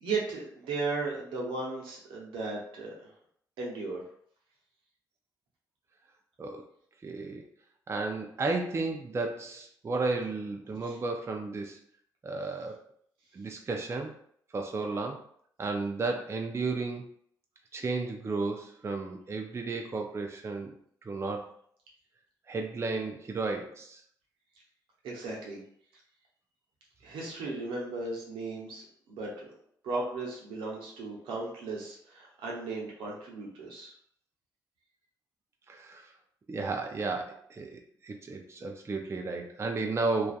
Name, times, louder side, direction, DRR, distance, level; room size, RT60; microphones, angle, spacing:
voice 1, 0.0-3.1 3.6-4.0 10.9-11.0 25.0-25.6 27.0-29.5 29.8-33.9, right 3 dB, 85° right, -2 dB, 0.8 m, -36 dB
voice 2, 7.0-7.5 7.9-11.8 12.2-12.8 13.3-14.2 14.5-15.3 15.6-17.1 17.7-20.7 21.0-21.5 22.5-24.0 35.7-36.1 36.5-40.3, right 3 dB, 30° right, 3 dB, 0.4 m, -33 dB
2.6 x 2.3 x 2.3 m, 0.63 s
supercardioid pair, 55°, 9 cm